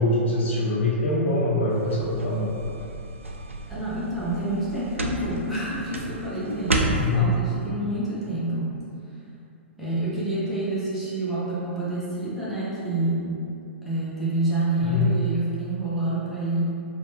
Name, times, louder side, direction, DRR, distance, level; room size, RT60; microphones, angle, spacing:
voice 1, 0.0-2.5 7.0-7.4 14.8-15.1, left 2 dB, 65° left, -6 dB, 0.9 m, -23 dB
sound 1, 1.7-7.2, right 2 dB, 85° right, 0.4 m, -31 dB
voice 2, 3.7-8.8 9.8-13.4 13.8-16.6, right 2 dB, ahead, -11 dB, 1.1 m, -28 dB
4.2 x 2.5 x 3.2 m, 2.7 s
figure-of-eight pair, 110°, 7 cm